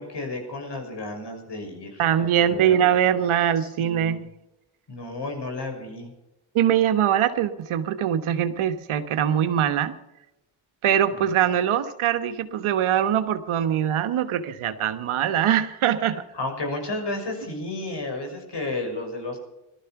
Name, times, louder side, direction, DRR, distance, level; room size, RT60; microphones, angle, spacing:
voice 1, 0.0-2.9 3.6-4.2 4.9-6.1 16.0-19.4, left 2 dB, 55° left, 4 dB, 6.2 m, -33 dB
voice 2, 2.0-4.2 6.5-9.9 10.8-16.2, right 10 dB, 80° right, 10 dB, 1.4 m, -22 dB
18.0 x 13.0 x 5.9 m, 0.92 s
supercardioid pair, 55°, 49 cm